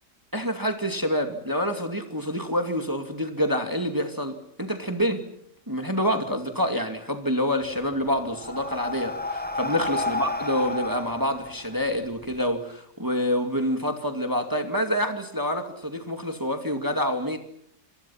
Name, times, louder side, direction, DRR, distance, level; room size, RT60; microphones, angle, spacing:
voice 1, 0.3-5.3 5.7-17.4, equal, 10° right, 5 dB, 2.3 m, -27 dB
Breathing, 7.6-12.4, left 2 dB, 5° left, 1.3 m, -31 dB
28.0 x 26.0 x 5.9 m, 0.70 s
omnidirectional pair, 1.9 m